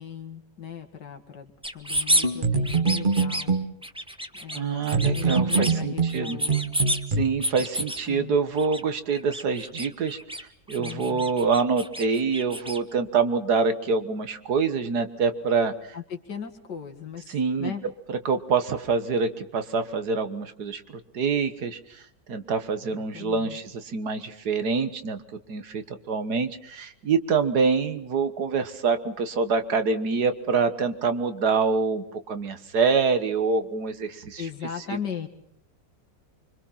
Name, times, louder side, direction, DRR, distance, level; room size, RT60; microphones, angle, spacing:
voice 1, 0.0-3.6 4.4-6.7 7.8-8.4 10.8-11.3 15.9-17.8 22.8-23.6 34.4-35.3, left 7 dB, 80° left, 5 dB, 2.6 m, -38 dB
sound 1, 1.6-2.3 2.6-3.4 3.8-4.6 4.8-5.7 6.1-7.0 7.4-8.0 8.5-8.8 9.1-10.4 10.7-12.8, equal, 5° right, 0.9 m, -29 dB
sound 2, 2.2-3.7 4.9-7.2, right 4 dB, 30° right, 1.5 m, -24 dB
voice 2, 4.5-6.4 7.2-10.2 10.7-15.7 17.3-17.7 18.3-20.8 21.1-22.0 22.3-25.2 25.5-34.4, right 5 dB, 65° right, 9 dB, 1.9 m, -25 dB
25.5 x 24.5 x 5.8 m, 0.71 s
omnidirectional pair, 1.8 m